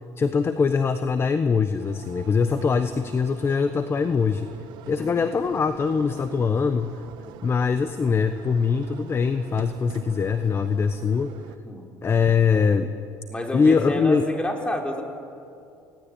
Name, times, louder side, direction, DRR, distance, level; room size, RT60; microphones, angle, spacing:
voice 1, 0.2-4.5 4.9-7.0 7.4-11.3 12.0-12.9 13.5-14.2, left 5 dB, 30° left, 10 dB, 1.1 m, -22 dB
sound 1, 1.8-11.6, right 9 dB, 70° right, 1.5 m, -45 dB
voice 2, 13.3-15.0, left 1 dB, 15° left, 2 dB, 4.3 m, -29 dB
29.5 x 18.5 x 8.9 m, 2.5 s
supercardioid pair, 95°, 8 cm